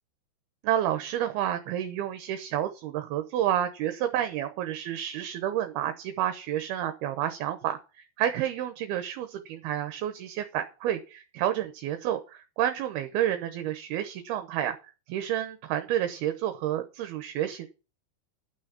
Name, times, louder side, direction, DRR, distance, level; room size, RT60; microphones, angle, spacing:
voice 1, 0.6-14.8 15.1-17.7, right 11 dB, 75° right, 8 dB, 2.7 m, -30 dB
12.0 x 6.2 x 6.9 m, 0.33 s
omnidirectional pair, 4.7 m